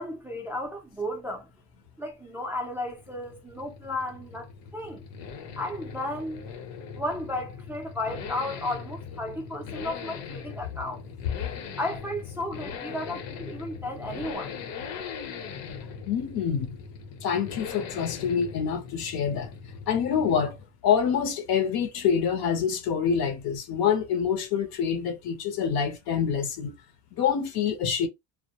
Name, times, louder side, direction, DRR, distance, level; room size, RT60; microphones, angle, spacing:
voice 1, 0.0-1.5 2.0-4.5 4.7-5.0 5.6-6.5 6.9-11.0 11.8-14.5, left 1 dB, 5° right, 0.3 m, -34 dB
Accelerating revving vroom, 2.6-20.7 21.0-21.1, left 6 dB, 80° left, 0.9 m, -40 dB
voice 2, 16.1-16.8 17.2-19.5 19.9-20.6 20.8-26.7 27.2-28.1, left 7 dB, 60° left, 0.6 m, -26 dB
2.1 x 2.1 x 2.8 m
cardioid pair, 140°, 43 cm